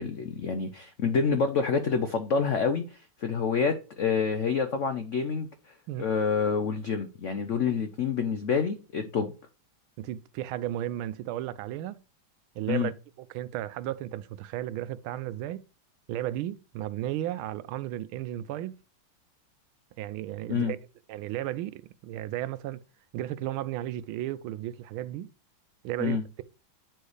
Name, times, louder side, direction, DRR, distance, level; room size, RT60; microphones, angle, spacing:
voice 1, 0.0-5.5 6.0-9.3 12.7-12.9 20.5-20.7 26.0-26.2, left 5 dB, 85° left, 0.6 m, -27 dB
voice 2, 10.0-12.0 12.5-12.9 13.3-15.7 16.1-18.8 20.0-20.8 21.1-22.8 23.1-25.3 25.8-26.4, right 13 dB, 85° right, 1.4 m, -34 dB
8.9 x 4.5 x 4.8 m
omnidirectional pair, 2.2 m